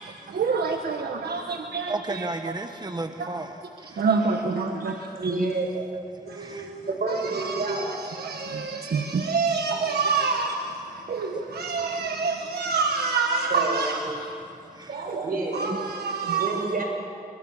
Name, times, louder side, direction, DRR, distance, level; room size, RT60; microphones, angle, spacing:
voice 1, 0.0-2.2 3.2-3.3 4.0-5.3 6.3-6.8 7.2-14.0 15.1-15.2 15.5-16.5, right 4 dB, 90° right, 3 dB, 1.5 m, -27 dB
voice 2, 1.9-4.0 5.9-6.9 8.3-8.5 10.9-11.7 11.9-12.1 14.0-14.2 14.7-15.0 15.7-15.8, right 2 dB, 25° right, 6 dB, 1.3 m, -36 dB
voice 3, 4.8-5.9 6.9-7.9 9.7-9.8 12.6-12.7 13.5-13.9 14.6-15.8 16.2-16.8, right 3 dB, 65° right, 2 dB, 6.2 m, -30 dB
29.5 x 24.0 x 7.3 m, 2.4 s
cardioid pair, 70°, 16 cm